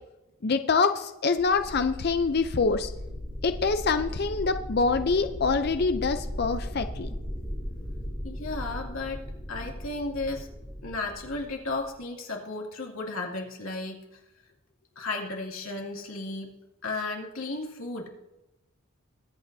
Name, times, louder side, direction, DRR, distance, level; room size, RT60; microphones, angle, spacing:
voice 1, 0.4-2.9 3.4-7.1, left 4 dB, 50° left, 8 dB, 0.5 m, -25 dB
sound 1, 1.4-12.0, equal, ahead, 3.5 m, -37 dB
voice 2, 8.2-10.5 10.8-14.2 15.0-16.5 16.8-18.1, left 2 dB, 75° left, -1 dB, 2.6 m, -34 dB
22.0 x 8.5 x 2.7 m, 0.93 s
head